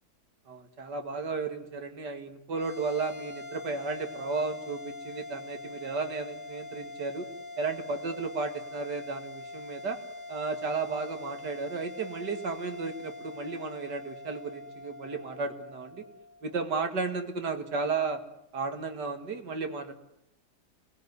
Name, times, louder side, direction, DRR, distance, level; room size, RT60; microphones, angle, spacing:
voice 1, 0.5-7.3 7.6-10.0 10.3-16.0 16.4-18.2 18.5-19.9, right 4 dB, 90° right, 5 dB, 2.7 m, -34 dB
sound 1, 2.5-17.1, left 2 dB, 50° left, 4.6 m, -44 dB
28.0 x 19.5 x 9.7 m, 0.78 s
omnidirectional pair, 1.8 m